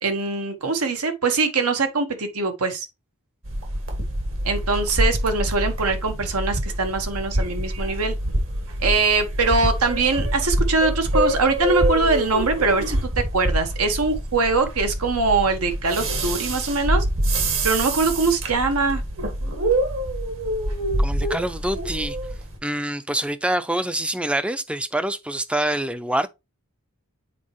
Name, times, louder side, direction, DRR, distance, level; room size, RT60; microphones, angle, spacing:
voice 1, 0.0-2.9 4.4-8.1 8.8-17.0 17.6-19.0, right 3 dB, 85° right, 1.4 m, -22 dB
sound 1, 3.4-22.6, right 1 dB, 65° right, 1.9 m, -25 dB
voice 2, 21.0-22.2 22.6-26.3, right 1 dB, 5° right, 0.4 m, -25 dB
7.5 x 4.4 x 3.1 m
head